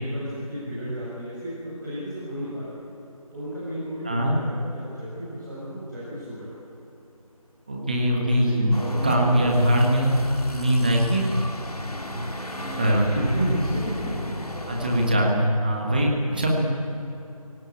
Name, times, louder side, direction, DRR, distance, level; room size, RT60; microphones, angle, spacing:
voice 1, 0.0-2.8 3.3-6.5 8.2-9.7 12.6-14.4, equal, 30° right, -9 dB, 7.3 m, -32 dB
voice 2, 7.7-8.8 9.0-10.1 10.5-11.4 12.1-12.2 12.8-13.0 13.4-13.5 14.7-16.6, equal, 15° right, -1 dB, 1.6 m, -22 dB
sound 1, 8.7-15.1, left 1 dB, 85° left, 2.3 m, -34 dB
25.5 x 17.5 x 8.7 m, 3.0 s
figure-of-eight pair, 170°, 19 cm